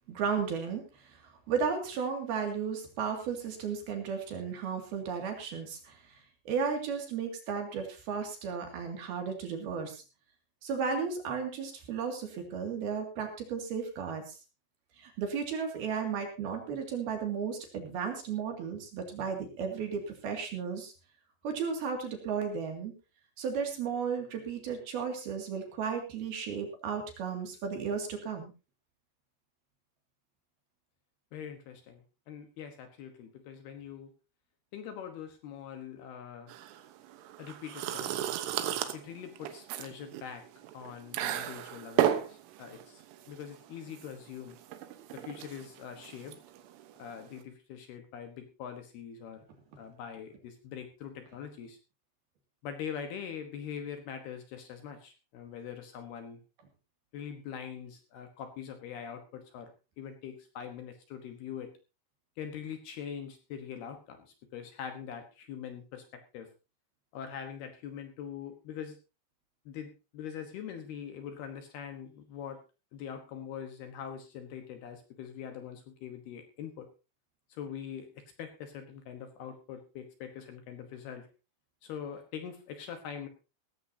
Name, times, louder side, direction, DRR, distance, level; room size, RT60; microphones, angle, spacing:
voice 1, 0.1-10.0 10.6-14.4 15.0-20.9 21.4-22.9 23.4-28.5, right 6 dB, 55° right, 3 dB, 4.0 m, -34 dB
voice 2, 31.3-34.1 34.7-36.5 37.4-38.4 38.9-40.4 40.7-44.6 45.1-46.4 47.0-49.4 49.8-51.8 52.6-56.4 57.1-61.7 62.4-66.5 67.1-69.0 69.7-72.6 72.9-76.9 77.5-81.3 81.8-83.3, left 8 dB, 65° left, 6 dB, 2.9 m, -43 dB
sound 1, 36.5-47.4, right 11 dB, 85° right, 3.7 m, -35 dB
17.5 x 15.0 x 2.8 m, 0.30 s
omnidirectional pair, 5.5 m